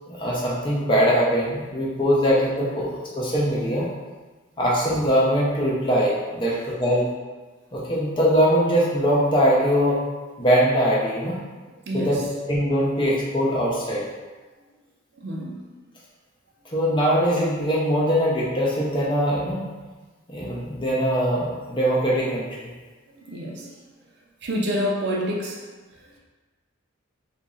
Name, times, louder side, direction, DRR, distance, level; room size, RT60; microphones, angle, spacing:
voice 1, 0.2-3.9 4.6-7.1 7.7-10.0 10.4-11.4 11.9-12.2 12.5-14.0 16.7-19.7 20.3-22.5, equal, 25° left, -6 dB, 0.6 m, -22 dB
voice 2, 11.9-12.3 15.2-15.6 23.1-23.8 24.4-25.6 26.0-26.2, equal, 55° right, -2 dB, 0.5 m, -28 dB
3.0 x 2.6 x 3.7 m, 1.3 s
head